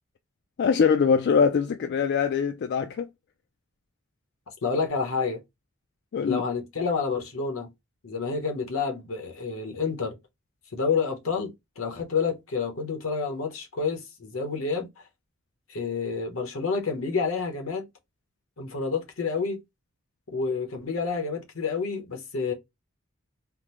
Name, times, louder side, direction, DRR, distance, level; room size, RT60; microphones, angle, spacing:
voice 1, 0.6-3.1 6.1-6.4, left 6 dB, 55° left, 0.3 m, -23 dB
voice 2, 4.6-5.4 6.3-7.7 8.0-10.2 10.7-15.0 15.7-17.9 18.6-19.6 20.3-22.5, left 5 dB, 80° left, 0.9 m, -29 dB
3.6 x 2.0 x 2.9 m
head